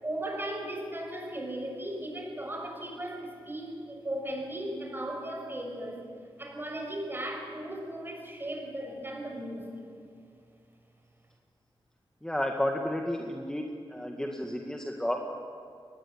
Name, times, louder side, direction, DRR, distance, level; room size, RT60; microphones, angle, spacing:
voice 1, 0.0-6.0 6.4-9.7, right 1 dB, 25° right, 2 dB, 6.4 m, -36 dB
voice 2, 12.2-13.6 13.9-15.2, left 1 dB, 5° left, 1 dB, 2.0 m, -31 dB
23.5 x 19.5 x 9.9 m, 2.3 s
wide cardioid pair, 95°, 9 cm